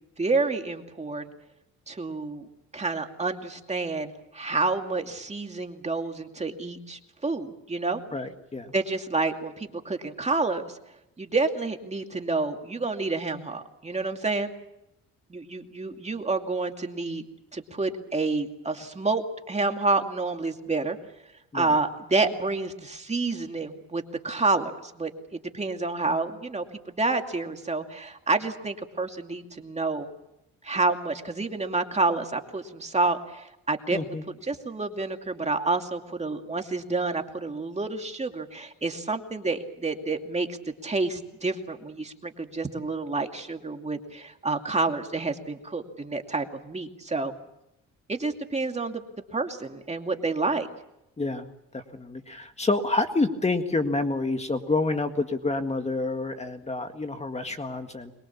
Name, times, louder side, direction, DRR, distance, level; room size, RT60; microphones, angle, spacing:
voice 1, 0.2-1.3 1.9-2.5 2.7-8.0 8.7-10.6 11.2-14.5 15.3-17.2 17.5-21.0 21.5-30.1 30.6-34.0 34.3-47.3 48.1-49.0 49.3-50.7, right 3 dB, 20° right, 4 dB, 2.5 m, -29 dB
voice 2, 8.1-8.7 21.5-21.7 33.9-34.2 51.2-51.5 51.7-58.1, left 3 dB, 20° left, 7 dB, 1.8 m, -28 dB
23.0 x 21.5 x 7.2 m, 0.85 s
cardioid pair, 90°, 30 cm